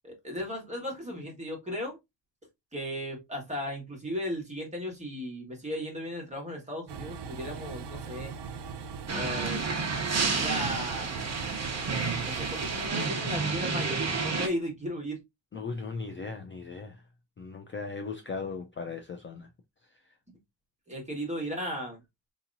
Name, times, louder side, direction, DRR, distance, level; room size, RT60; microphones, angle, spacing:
voice 1, 0.0-2.0 2.7-8.3 9.1-9.6 10.3-11.1 12.2-15.2 20.9-22.0, equal, 15° right, 1.6 m, -36 dB
Train, 6.9-12.9, right 6 dB, 65° right, 0.7 m, -40 dB
sound 1, 9.1-14.5, right 4 dB, 35° right, 0.9 m, -30 dB
voice 2, 15.5-17.0 17.4-19.5, left 4 dB, 30° left, 0.4 m, -37 dB
4.7 x 3.0 x 2.6 m
wide cardioid pair, 155°, 45 cm